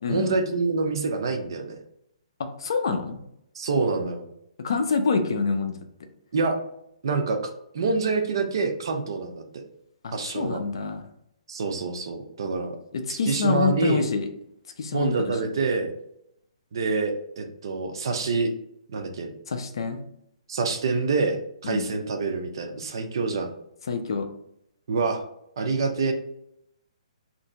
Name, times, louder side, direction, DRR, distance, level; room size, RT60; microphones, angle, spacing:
voice 1, 0.1-1.8 3.6-4.3 6.3-6.6 7.0-7.4 7.7-9.6 10.1-10.6 11.5-12.7 13.1-14.1 14.9-15.9 16.7-18.5 18.9-19.3 20.5-23.5 24.9-25.2 25.6-26.1, right 4 dB, 40° right, 5 dB, 0.4 m, -26 dB
voice 2, 2.4-3.2 4.6-5.7 10.0-11.0 12.9-14.3 14.8-15.4 19.5-20.0 21.6-21.9 23.9-24.3, left 4 dB, 45° left, 6 dB, 0.4 m, -26 dB
2.8 x 2.6 x 4.2 m, 0.76 s
hypercardioid pair, 180°, 4 cm